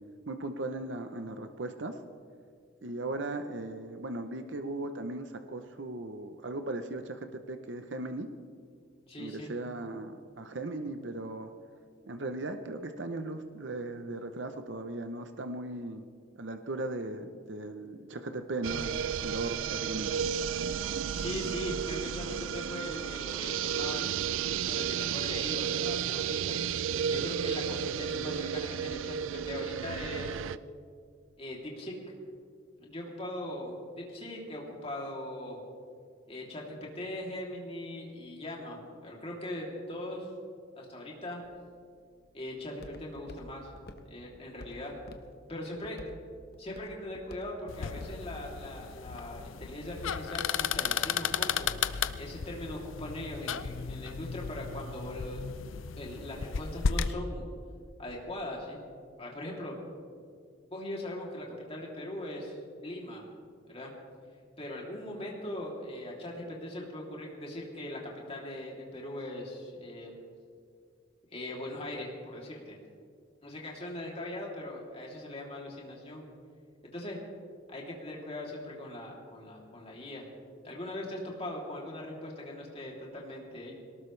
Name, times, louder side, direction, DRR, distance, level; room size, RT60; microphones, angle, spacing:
voice 1, 0.3-2.0 2.8-8.3 9.2-11.5 12.1-16.0 16.4-20.2, right 2 dB, 65° right, 7 dB, 0.8 m, -37 dB
voice 2, 9.1-9.5 21.1-24.1 24.6-26.6 27.1-30.5 31.4-31.9 32.8-35.6 36.3-40.3 40.8-41.4 42.3-43.7 44.0-44.9 45.5-46.0 46.6-51.7 52.2-55.5 56.0-57.4 58.0-58.8 59.2-59.8 60.2-60.3 60.7-62.5 62.8-63.2 63.7-63.9 64.6-68.0 68.3-70.1 71.3-72.8 73.4-76.2 76.9-77.2 77.7-80.3 80.6-83.7, left 1 dB, 30° left, -2 dB, 3.1 m, -40 dB
sound 1, 18.6-30.6, right 8 dB, 90° right, 0.4 m, -33 dB
Walk footsteps, 41.4-49.4, left 1 dB, 55° left, 1.1 m, -52 dB
sound 2, 47.7-57.1, left 7 dB, 85° left, 0.6 m, -34 dB
22.5 x 19.0 x 3.3 m, 2.2 s
head